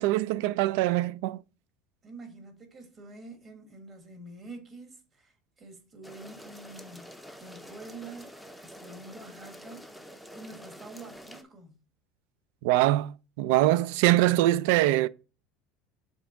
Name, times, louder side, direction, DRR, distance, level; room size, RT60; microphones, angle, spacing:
voice 1, 0.0-1.4 12.6-15.1, right 16 dB, 75° right, 0.3 m, -23 dB
voice 2, 2.0-9.9 10.3-11.8, right 2 dB, 25° right, 1.6 m, -47 dB
sound 1, 6.0-11.4, equal, ahead, 0.6 m, -47 dB
7.2 x 3.6 x 3.8 m
cardioid pair, 155°, 0 cm